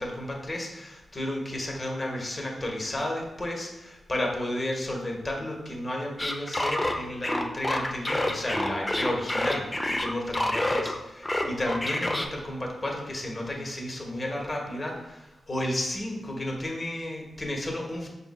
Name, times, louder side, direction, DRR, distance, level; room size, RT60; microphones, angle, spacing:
voice 1, 0.0-18.1, left 1 dB, 35° left, 0 dB, 1.1 m, -32 dB
sound 1, 6.2-10.9 11.2-12.3, left 1 dB, 20° left, 0.5 m, -27 dB
5.5 x 4.1 x 2.2 m, 1.0 s
cardioid pair, 50°, 0 cm